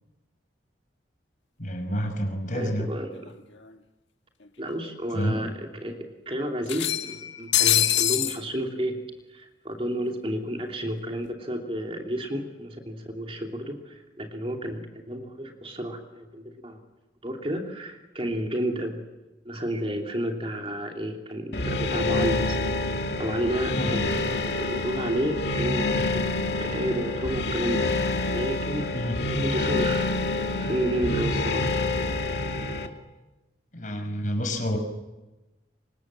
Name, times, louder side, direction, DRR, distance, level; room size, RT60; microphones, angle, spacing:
voice 1, 1.6-2.9 5.1-5.4 23.7-23.9 28.9-29.2 33.7-34.8, equal, 45° left, 5 dB, 6.0 m, -29 dB
voice 2, 2.5-3.3 4.6-9.0 9.3-16.8 17.2-19.0 19.4-22.8 23.2-28.9 29.3-30.1 30.6-31.7, right 1 dB, 30° right, 2 dB, 2.9 m, -31 dB
sound 1, 3.3-3.4 3.6-3.7 4.8-4.9 5.3-5.4 6.7-8.4, left 12 dB, 75° left, 1.6 m, -24 dB
sound 2, 21.5-32.9, left 2 dB, 60° left, 2.3 m, -27 dB
29.5 x 25.5 x 7.6 m, 1.1 s
head